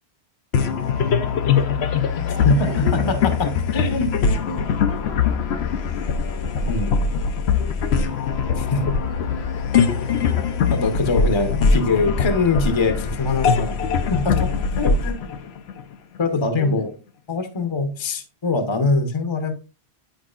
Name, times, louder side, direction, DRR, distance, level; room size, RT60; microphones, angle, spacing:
sound 1, 0.5-16.2, left 6 dB, 70° left, 0.9 m, -22 dB
voice 1, 0.6-3.1 3.7-6.7 7.6-10.6 16.3-16.9, left 3 dB, 90° left, -1 dB, 3.5 m, -38 dB
voice 2, 2.4-4.1 4.5-4.6 6.7-7.1 8.6-9.0 10.7-13.8 14.1-15.2 16.2-16.9 17.3-19.5, left 3 dB, 30° left, 7 dB, 0.8 m, -23 dB
10.5 x 4.6 x 2.4 m, 0.34 s
omnidirectional pair, 1.1 m